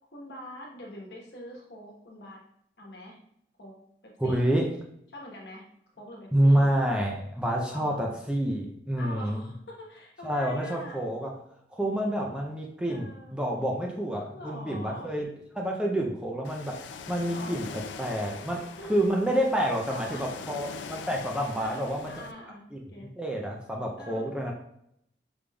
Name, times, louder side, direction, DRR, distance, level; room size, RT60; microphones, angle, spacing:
voice 1, 0.1-2.4 2.8-3.2 3.6-3.7 4.2-4.5 5.1-5.7 6.0-6.6 7.7-8.0 9.0-11.1 12.2-12.3 12.9-13.3 14.3-15.1 17.3-17.6 18.8-19.1 19.8-20.4 21.6-23.1 24.0-24.3, left 1 dB, 70° left, -1 dB, 1.1 m, -44 dB
voice 2, 4.2-4.7 6.3-9.4 10.2-11.4 11.7-15.3 15.5-22.2 22.7-22.8 23.2-24.5, right 1 dB, 5° right, -1 dB, 0.4 m, -28 dB
Ocean, 16.4-22.3, left 5 dB, 90° left, 0.3 m, -42 dB
5.2 x 3.3 x 2.3 m, 0.73 s
head